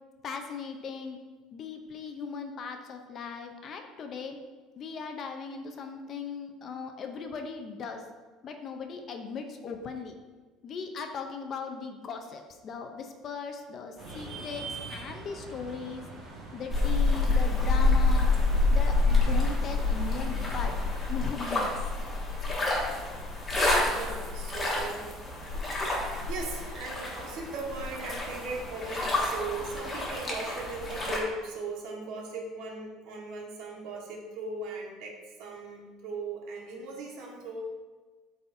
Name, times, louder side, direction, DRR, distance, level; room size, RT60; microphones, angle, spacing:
voice 1, 0.2-1.2 1.5-4.4 4.7-8.1 8.4-10.2 10.6-16.1 16.5-18.3 18.7-20.7 21.1-21.7, left 5 dB, 35° left, 5 dB, 0.6 m, -38 dB
sound 1, 14.0-20.9, right 3 dB, 30° right, 1.7 m, -43 dB
sound 2, 16.7-31.2, left 3 dB, 15° left, 1.2 m, -28 dB
voice 2, 23.8-25.2 25.5-37.7, right 3 dB, 65° right, -1 dB, 1.5 m, -38 dB
12.0 x 4.1 x 2.7 m, 1.3 s
cardioid pair, 165°, 0 cm